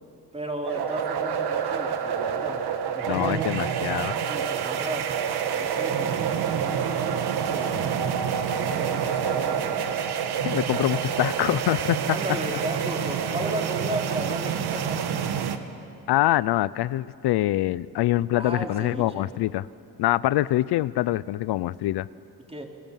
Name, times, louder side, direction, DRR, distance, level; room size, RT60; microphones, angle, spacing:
voice 1, 0.3-2.6 2.9-3.5 4.0-5.1 5.5-8.2 8.6-9.8 12.0-15.0 18.3-19.3 22.5-22.6, right 1 dB, 15° right, 1 dB, 3.7 m, -35 dB
sound 1, 0.6-15.6, right 8 dB, 80° right, 1.5 m, -27 dB
voice 2, 3.1-4.1 10.4-12.0 16.1-19.7 20.0-22.1, left 15 dB, 85° left, 18 dB, 0.6 m, -24 dB
30.0 x 21.0 x 7.5 m, 2.6 s
cardioid pair, 80°, 39 cm